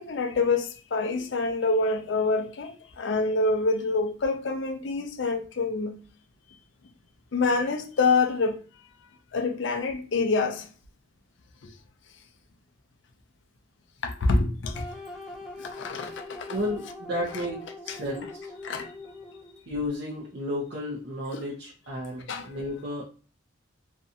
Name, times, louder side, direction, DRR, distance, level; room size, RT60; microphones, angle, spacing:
voice 1, 0.0-6.0 7.3-8.6 9.3-10.7 11.6-11.7 14.0-15.0 15.6-16.6 17.3-17.5 17.9-18.0 18.6-18.9 21.3-21.5 22.3-22.7, left 3 dB, 60° left, 0.5 m, -27 dB
sound 1, 14.7-19.7, left 2 dB, 5° right, 0.4 m, -42 dB
voice 2, 16.5-18.5 19.7-23.0, left 1 dB, 55° right, 0.6 m, -33 dB
2.5 x 2.3 x 2.7 m
head